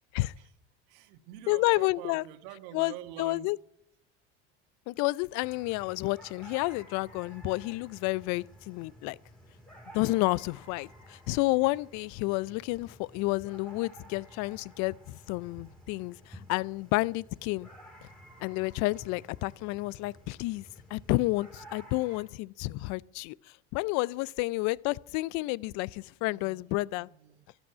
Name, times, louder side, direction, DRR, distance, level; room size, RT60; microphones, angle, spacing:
voice 1, 0.9-3.5 26.3-27.5, right 13 dB, 70° right, 1.5 m, -47 dB
voice 2, 1.5-2.2 2.7-2.9 3.2-3.6 4.9-9.2 9.9-17.7 18.4-20.6 20.9-23.4 23.7-27.1, left 21 dB, 60° left, 0.5 m, -30 dB
sound 1, 5.4-22.2, equal, ahead, 4.4 m, -52 dB
12.5 x 9.0 x 9.6 m
hypercardioid pair, 85°, 33 cm